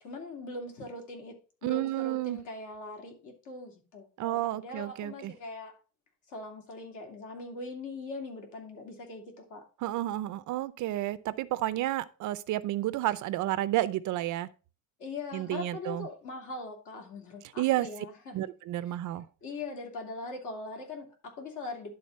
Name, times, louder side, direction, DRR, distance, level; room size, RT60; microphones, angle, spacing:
voice 1, 0.0-5.8 6.3-9.7 15.0-18.5 19.4-21.9, left 2 dB, 55° left, 2.9 m, -41 dB
voice 2, 1.6-2.4 4.2-5.3 9.8-14.5 15.3-16.1 17.6-17.9 18.3-19.3, right 15 dB, 55° right, 0.6 m, -31 dB
11.0 x 3.9 x 5.3 m
cardioid pair, 160°, 35 cm